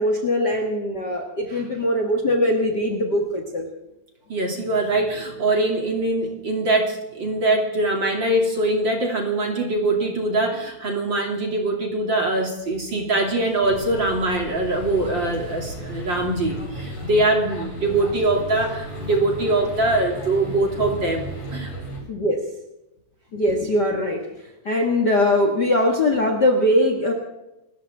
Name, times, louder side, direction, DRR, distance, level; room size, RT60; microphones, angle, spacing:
voice 1, 0.0-3.6 22.1-22.4 23.3-24.2 24.6-27.1, left 1 dB, 85° left, 3 dB, 0.9 m, -21 dB
voice 2, 4.3-21.7, right 2 dB, 30° right, 1 dB, 2.6 m, -23 dB
sound 1, 13.6-22.0, equal, 40° left, 6.5 m, -35 dB
28.5 x 14.0 x 3.6 m, 0.93 s
omnidirectional pair, 5.2 m